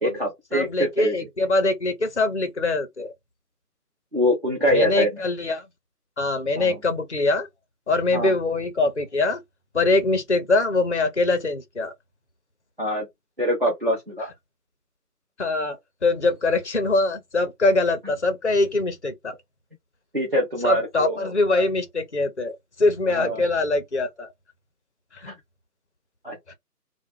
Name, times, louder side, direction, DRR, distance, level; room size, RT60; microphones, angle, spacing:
voice 1, 0.0-1.1 4.1-5.2 6.6-6.8 8.1-8.4 12.8-13.1 13.4-14.3 20.1-21.3 23.1-23.4 25.3-25.4 26.2-26.5, equal, 35° right, 0.7 m, -24 dB
voice 2, 0.5-3.1 4.7-5.6 6.2-7.5 7.9-9.4 9.7-11.9 15.4-15.8 16.0-19.3 20.6-24.3, left 2 dB, 50° left, 0.5 m, -23 dB
2.2 x 2.1 x 2.9 m
figure-of-eight pair, 160°, 48 cm